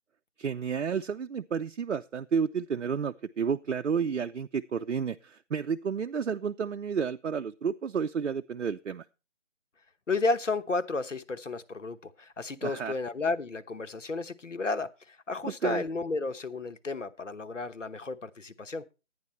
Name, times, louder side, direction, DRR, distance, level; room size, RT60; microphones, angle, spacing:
voice 1, 0.4-9.0 12.6-13.0 15.4-15.8, right 6 dB, 80° right, 0.6 m, -31 dB
voice 2, 10.1-18.8, left 3 dB, 90° left, 1.1 m, -32 dB
11.0 x 9.4 x 4.2 m
figure-of-eight pair, 165°, 36 cm